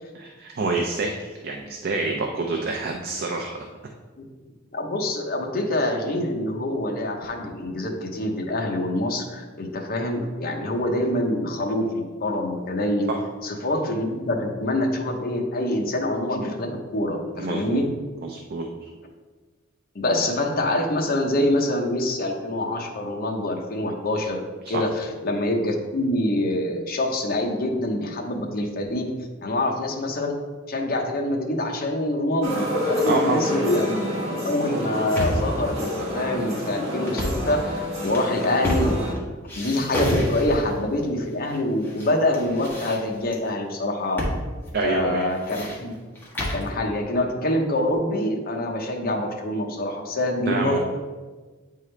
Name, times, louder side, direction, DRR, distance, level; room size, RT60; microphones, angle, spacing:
voice 1, 0.1-3.6 13.1-13.2 17.4-17.8 18.2-18.9 24.7-24.8 33.0-33.5 44.7-45.3 50.5-50.8, right 3 dB, 50° right, 2 dB, 0.5 m, -27 dB
voice 2, 4.7-13.1 13.4-17.9 19.9-24.4 24.7-29.1 29.4-30.4 30.7-34.0 34.4-39.1 39.6-44.2 44.8-45.9 46.5-50.8, left 1 dB, 50° left, 2 dB, 0.8 m, -25 dB
sound 1, 32.4-39.1, left 1 dB, 35° right, 1.4 m, -28 dB
sound 2, 35.0-35.6 37.0-37.5 38.0-39.2 39.5-40.8 41.5-42.1 42.3-43.4 44.2-44.4 44.7-44.8 45.2-46.7, left 1 dB, 10° left, 1.2 m, -28 dB
8.7 x 3.7 x 3.2 m, 1.4 s
head